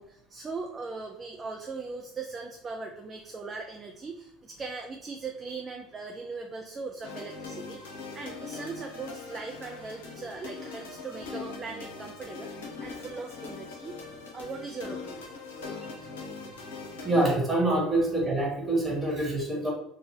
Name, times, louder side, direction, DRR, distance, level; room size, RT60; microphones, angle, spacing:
voice 1, 0.0-14.0 14.3-15.3 15.8-16.0 18.0-18.1, right 4 dB, 30° right, 2 dB, 0.4 m, -40 dB
sound 1, 7.0-17.4, left 4 dB, 75° left, 0.6 m, -41 dB
voice 2, 17.0-19.7, right 2 dB, 15° right, -3 dB, 1.4 m, -26 dB
2.7 x 2.2 x 3.5 m, 0.77 s
hypercardioid pair, 70°, 0 cm